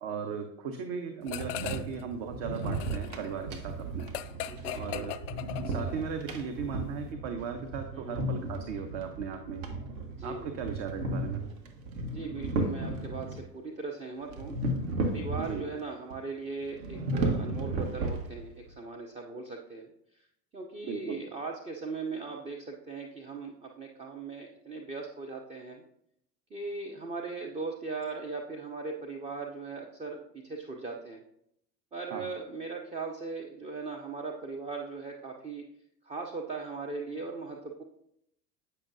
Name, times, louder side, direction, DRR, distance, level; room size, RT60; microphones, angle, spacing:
voice 1, 0.0-4.1 4.7-5.1 5.6-9.7 10.2-11.4 15.4-15.6 20.8-21.3 32.1-32.3, right 6 dB, 50° right, 5 dB, 0.8 m, -37 dB
sound 1, 1.3-2.0 2.3-6.1, left 12 dB, 55° left, 0.5 m, -39 dB
sound 2, 1.3-13.5 14.3-15.8 16.1-16.2 16.7-18.7, right 2 dB, 65° right, 1.2 m, -35 dB
voice 2, 4.4-5.1 7.9-8.1 10.2-10.5 12.1-14.5 15.0-20.3 20.5-25.8 26.5-31.2 31.9-35.7 36.0-37.8, right 4 dB, 15° right, 2 dB, 0.4 m, -39 dB
8.4 x 5.5 x 2.6 m, 0.75 s
hypercardioid pair, 80°, 47 cm